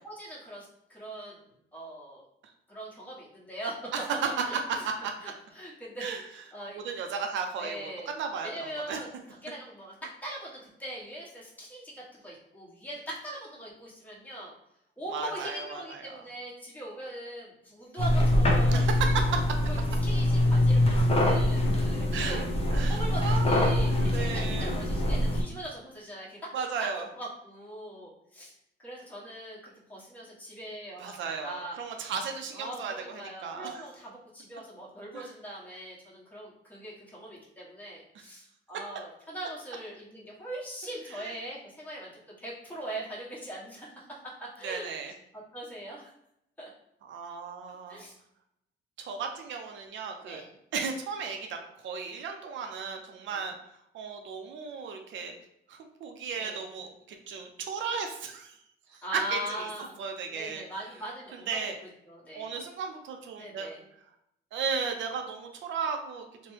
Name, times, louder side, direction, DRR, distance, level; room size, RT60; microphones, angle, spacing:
voice 1, 0.0-1.4 1.7-2.2 2.7-3.8 4.4-4.8 5.2-6.0 6.5-6.8 7.6-8.1 8.4-9.1 9.4-9.9 10.2-14.5 15.0-18.8 19.6-19.8 20.0-22.4 22.9-26.9 27.1-31.8 32.5-42.1 42.4-44.1 44.6-44.9 45.5-46.1 46.6-46.7 47.9-48.2 50.2-50.5 53.3-53.5 56.4-56.6 59.0-60.0 60.3-61.7 62.1-62.5 63.4-63.8 66.4-66.5, right 1 dB, 10° left, -5 dB, 1.2 m, -41 dB
voice 2, 3.9-5.1 6.0-6.2 6.7-9.0 15.1-16.2 18.7-19.6 22.1-22.4 22.7-24.8 26.5-27.1 31.0-33.7 35.1-35.3 41.1-41.3 44.6-45.1 47.0-48.1 49.0-50.4 50.7-51.6 51.8-53.5 53.9-55.3 55.7-58.6 58.9-59.7 60.0-60.6 61.5-61.8 62.3-63.7 64.5-66.5, right 5 dB, 70° right, 4 dB, 0.5 m, -35 dB
sound 1, 18.0-25.4, left 1 dB, 30° left, 0.7 m, -24 dB
2.9 x 2.2 x 3.2 m, 0.78 s
cardioid pair, 90°, 20 cm